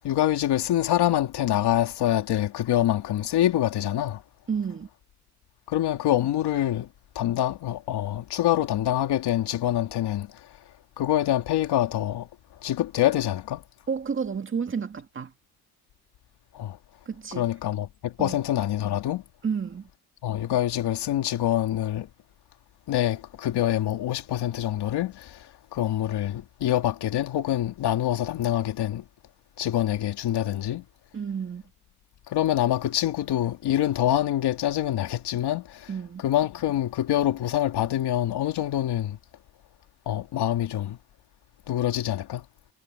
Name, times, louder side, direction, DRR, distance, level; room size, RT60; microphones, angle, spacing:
voice 1, 0.0-4.2 5.7-6.9 7.1-10.5 11.0-12.3 12.6-13.6 16.5-16.8 17.3-19.2 20.2-22.1 22.9-29.0 29.6-30.8 32.3-35.9 36.2-39.2 40.1-41.0 41.7-42.5, left 12 dB, 75° left, 2.8 m, -25 dB
voice 2, 4.5-4.9 13.9-15.3 17.1-17.5 18.2-18.4 19.4-19.9 31.1-31.6 35.9-36.2, right 6 dB, 30° right, 2.1 m, -31 dB
cardioid pair, 135°, 40 cm